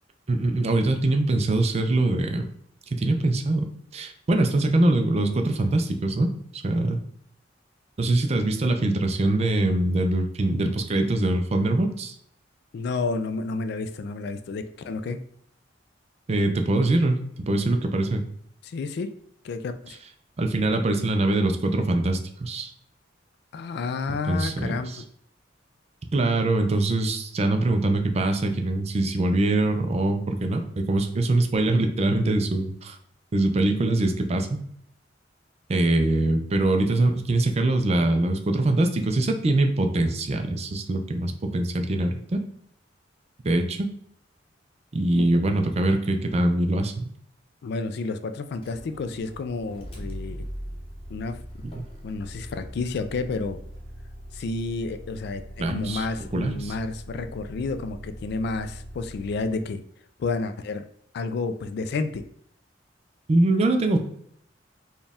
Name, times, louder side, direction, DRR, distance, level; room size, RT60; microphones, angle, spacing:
voice 1, 0.3-2.5 2.9-3.7 3.9-7.0 8.0-12.2 16.3-18.2 20.4-22.7 24.3-25.0 26.1-33.0 33.3-34.6 35.7-42.4 43.4-43.9 44.9-47.1 51.6-51.9 55.6-56.1 56.3-56.7 63.3-64.0, right 2 dB, 35° right, 6 dB, 0.4 m, -23 dB
voice 2, 12.7-15.2 18.6-19.1 19.4-20.0 23.5-24.9 45.1-45.3 47.6-50.5 51.1-51.4 52.0-53.6 54.3-59.8 60.2-60.9 61.1-62.3, left 3 dB, 60° left, 10 dB, 0.3 m, -30 dB
Motor vehicle (road), 48.6-59.7, equal, 30° left, 0.8 m, -41 dB
4.3 x 2.3 x 3.4 m, 0.68 s
head